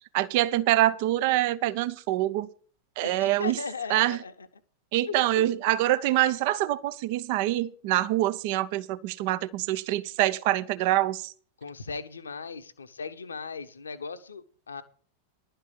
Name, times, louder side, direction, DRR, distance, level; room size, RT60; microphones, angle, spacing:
voice 1, 0.1-2.5 3.0-3.5 3.9-4.2 4.9-11.3, right 15 dB, 50° right, 0.7 m, -25 dB
voice 2, 3.0-4.5 5.1-5.5 11.6-14.8, left 5 dB, 75° left, 1.1 m, -37 dB
11.5 x 5.7 x 8.5 m
figure-of-eight pair, 90°, 0 cm